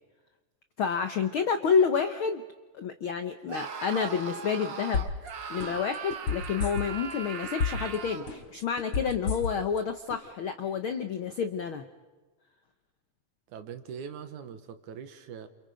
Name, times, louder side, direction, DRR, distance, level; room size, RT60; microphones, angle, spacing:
voice 1, 0.8-2.4 2.8-5.1 5.5-11.8, left 6 dB, 75° left, 8 dB, 1.2 m, -29 dB
Screaming, 3.5-8.3, right 6 dB, 50° right, 1.4 m, -39 dB
sound 1, 4.9-5.3 5.6-7.1 7.4-8.0 8.3-9.8 10.1-10.2, left 5 dB, 45° left, 4.7 m, -30 dB
voice 2, 13.5-15.5, right 7 dB, 70° right, 9 dB, 2.7 m, -42 dB
29.5 x 28.0 x 5.1 m, 1.3 s
omnidirectional pair, 3.7 m